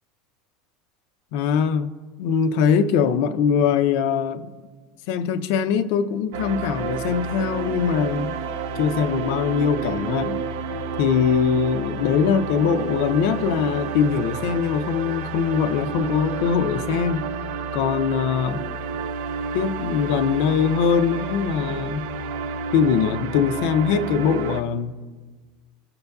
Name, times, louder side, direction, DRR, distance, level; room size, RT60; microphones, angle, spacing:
voice 1, 1.3-1.9 2.2-4.5 5.1-8.3 8.8-10.4 11.0-17.2 17.7-18.6 19.5-22.0 22.7-24.9, left 7 dB, 70° left, 0.5 m, -22 dB
sound 1, 6.3-24.6, right 4 dB, 75° right, 0.6 m, -30 dB
16.0 x 5.4 x 2.3 m
supercardioid pair, 105°, 0 cm